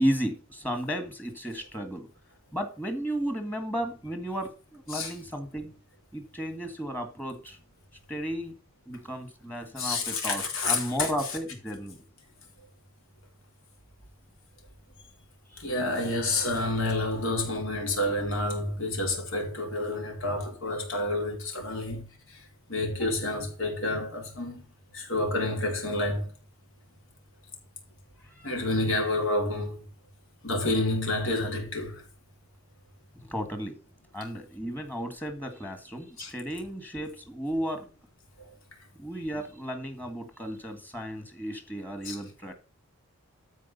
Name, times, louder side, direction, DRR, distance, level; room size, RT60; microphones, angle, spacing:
voice 1, 0.0-2.1 2.5-5.8 6.1-7.6 8.1-8.5 8.9-12.0 15.5-15.7 23.0-23.1 28.2-28.5 33.2-33.8 34.1-37.9 39.0-42.5, equal, 10° left, 1.9 m, -34 dB
voice 2, 9.8-11.1 15.6-22.0 22.3-22.4 22.7-24.6 24.9-26.3 28.4-29.8 30.4-32.0 36.2-36.3 42.0-42.2, left 2 dB, 65° left, 4.3 m, -29 dB
13.0 x 4.8 x 5.5 m
head